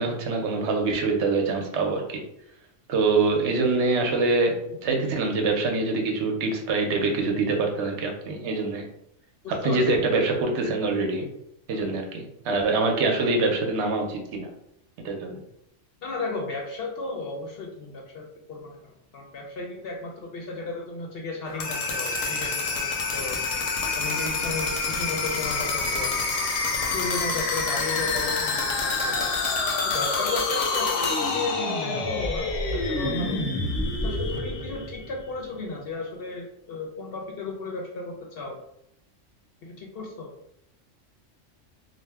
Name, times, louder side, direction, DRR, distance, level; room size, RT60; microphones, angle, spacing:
voice 1, 0.0-2.2 2.9-8.9 9.5-11.3 11.7-14.5 15.0-15.4, right 3 dB, 70° right, 2 dB, 0.8 m, -25 dB
voice 2, 9.4-10.0 16.0-23.4 24.0-26.1 26.9-29.2 29.8-33.4 33.9-38.6 39.6-40.3, left 3 dB, 65° left, 0 dB, 0.7 m, -34 dB
sound 1, 21.5-35.3, left 3 dB, 85° left, 0.9 m, -27 dB
2.5 x 2.0 x 3.3 m, 0.76 s
omnidirectional pair, 1.3 m